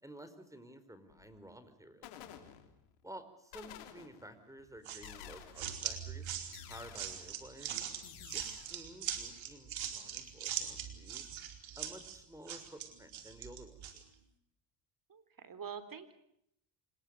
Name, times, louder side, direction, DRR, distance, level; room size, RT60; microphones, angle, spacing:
voice 1, 0.0-2.1 3.0-6.3 6.7-7.9 8.3-11.3 11.8-14.0, right 1 dB, 5° right, 11 dB, 4.8 m, -53 dB
sound 1, 1.1-1.5 2.0-3.0 3.5-4.4 5.0-5.9 6.5-7.4 8.0-8.8, left 11 dB, 90° left, 3.2 m, -52 dB
sound 2, 4.8-14.0, right 9 dB, 65° right, 4.6 m, -41 dB
voice 2, 15.1-16.2, right 7 dB, 40° right, 13 dB, 3.9 m, -46 dB
26.0 x 22.0 x 6.7 m, 0.73 s
supercardioid pair, 75°, 50 cm